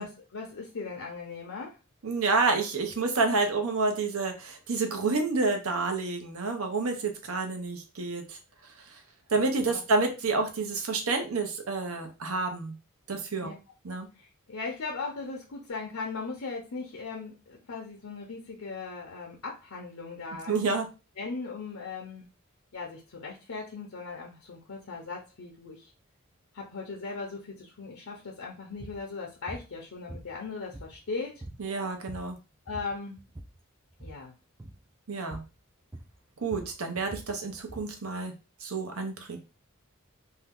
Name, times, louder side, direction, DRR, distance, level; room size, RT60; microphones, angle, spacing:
voice 1, 0.0-1.8 9.6-9.8 13.4-13.5 14.2-20.5 21.2-22.3 22.7-25.9 26.5-31.4 32.7-33.2 34.0-34.3, left 4 dB, 75° left, 0 dB, 0.7 m, -38 dB
voice 2, 2.0-8.4 9.3-12.7 13.1-13.5 13.8-14.1 20.5-20.9 31.6-32.4 35.1-35.4 36.4-38.3 38.6-39.4, right 3 dB, 75° right, 5 dB, 0.8 m, -29 dB
sound 1, 28.8-29.0 29.5-29.7 30.1-31.1 31.4-31.7 31.9-32.4 32.7-33.6 33.9-34.2 34.6-34.8 35.3-35.6 35.9-38.0, right 1 dB, 10° right, 0.3 m, -44 dB
2.7 x 2.2 x 3.5 m, 0.29 s
head